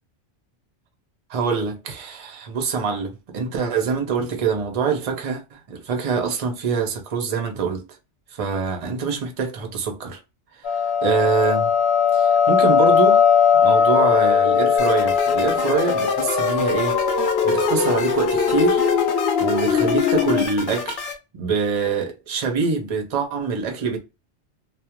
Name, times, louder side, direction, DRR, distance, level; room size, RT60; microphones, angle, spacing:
voice 1, 1.3-7.8 8.3-10.2 10.7-11.7 12.1-13.2 13.6-18.9 19.4-21.0 21.3-24.0, right 5 dB, 40° right, 0.5 m, -25 dB
sound 1, 10.6-20.5, left 7 dB, 65° left, 0.7 m, -19 dB
sound 2, 14.8-21.1, left 5 dB, 85° left, 1.0 m, -31 dB
2.3 x 2.1 x 2.8 m
omnidirectional pair, 1.2 m